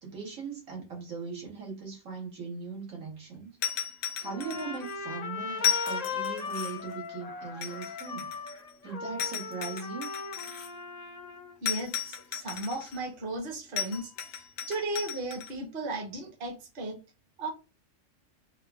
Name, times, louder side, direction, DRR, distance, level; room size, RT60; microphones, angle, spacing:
voice 1, 0.0-3.6 4.2-8.3 8.8-10.1, right 4 dB, 85° right, 1.5 m, -39 dB
sound 1, 3.6-4.9 5.6-6.9 7.6-8.7 9.2-10.7 11.7-13.0 13.8-15.5, left 9 dB, 85° left, 1.0 m, -34 dB
Trumpet, 4.2-11.6, left 4 dB, 55° left, 0.4 m, -38 dB
voice 2, 11.6-14.4 14.7-17.0 17.4-17.5, right 2 dB, 50° right, 0.9 m, -35 dB
3.7 x 2.1 x 2.2 m
omnidirectional pair, 1.3 m